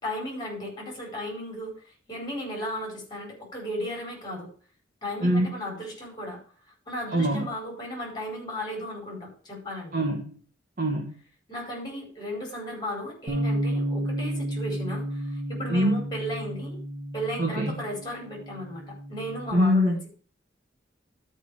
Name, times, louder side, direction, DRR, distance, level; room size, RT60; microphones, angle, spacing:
voice 1, 0.0-1.8 2.1-4.5 5.0-6.4 6.9-10.0 11.5-16.8 17.1-20.0, equal, 25° left, 0 dB, 4.7 m, -35 dB
voice 2, 5.2-5.5 7.1-7.5 9.9-10.4 10.8-11.1 15.7-16.0 17.4-17.8 19.5-20.0, equal, 45° right, -2 dB, 1.7 m, -24 dB
Bass guitar, 13.3-19.5, right 1 dB, 30° right, 3.8 m, -32 dB
12.5 x 5.3 x 4.9 m, 0.42 s
head